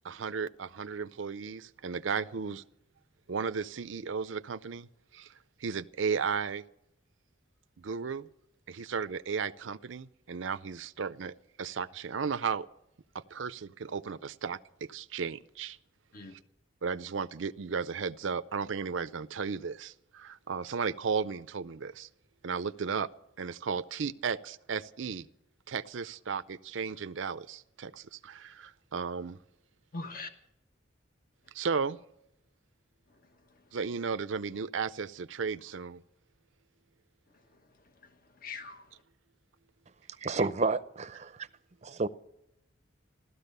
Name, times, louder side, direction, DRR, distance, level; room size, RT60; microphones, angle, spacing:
voice 1, 0.0-2.6 3.3-4.9 5.1-5.3 5.6-6.6 7.8-8.3 8.7-12.7 13.1-15.8 16.8-22.1 22.4-23.1 23.4-25.3 25.7-29.4 31.5-32.0 33.7-36.0, right 5 dB, 75° right, 0.5 m, -35 dB
voice 2, 29.9-30.3 33.1-33.8 37.3-39.0, left 3 dB, 45° left, 1.3 m, -45 dB
voice 3, 40.2-41.5 41.8-42.1, right 3 dB, 35° right, 0.6 m, -30 dB
15.0 x 13.0 x 6.7 m
head